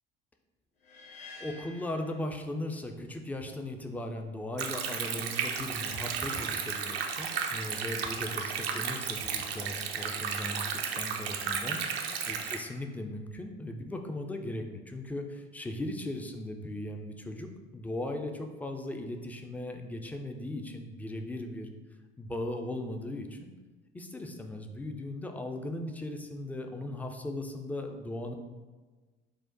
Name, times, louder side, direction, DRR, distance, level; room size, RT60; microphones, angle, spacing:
sound 1, 0.8-3.0, left 3 dB, 75° left, 0.7 m, -50 dB
voice 1, 1.4-12.0 12.3-21.7 22.2-23.5 23.9-28.4, left 1 dB, 5° left, 4 dB, 0.3 m, -38 dB
Stream, 4.6-12.6, right 6 dB, 75° right, 0.5 m, -33 dB
4.9 x 2.1 x 3.9 m, 1.3 s
figure-of-eight pair, 65°, 30 cm